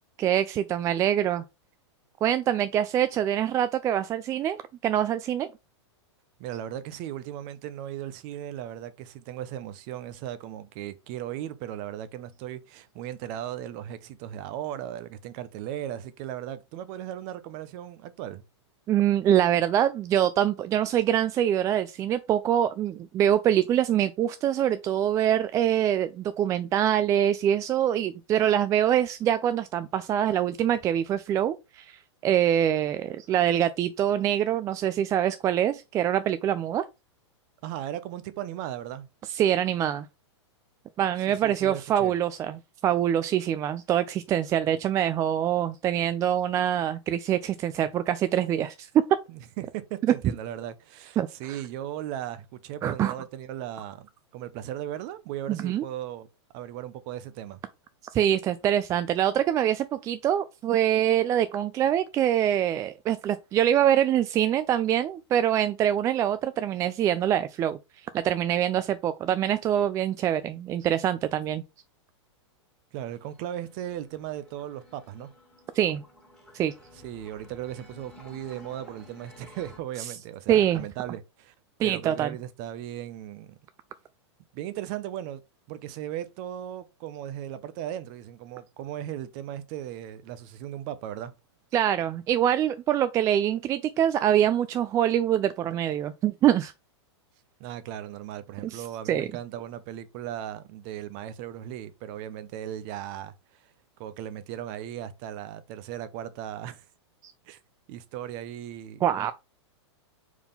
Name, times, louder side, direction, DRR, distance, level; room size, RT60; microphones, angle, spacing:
voice 1, 0.2-1.4 2.2-5.5 18.9-36.8 39.3-40.1 41.0-48.9 51.2-51.6 52.8-53.1 55.5-55.8 58.1-67.8 68.1-71.6 75.7-76.0 76.5-76.7 80.5-80.8 81.8-82.3 91.7-96.7 98.6-99.3 107.2-107.3 109.0-109.3, right 10 dB, 20° right, 0.4 m, -24 dB
voice 2, 6.4-18.4 37.6-39.1 41.3-42.1 49.3-56.3 56.5-57.6 72.9-75.3 77.0-81.5 81.8-83.6 84.5-85.4 85.7-91.3 97.6-103.7 104.0-106.9 107.5-107.6 107.9-109.3, right 11 dB, 40° right, 0.8 m, -37 dB
sound 1, 73.0-79.8, left 2 dB, 5° left, 1.9 m, -53 dB
4.7 x 3.7 x 5.5 m
hypercardioid pair, 135°, 15 cm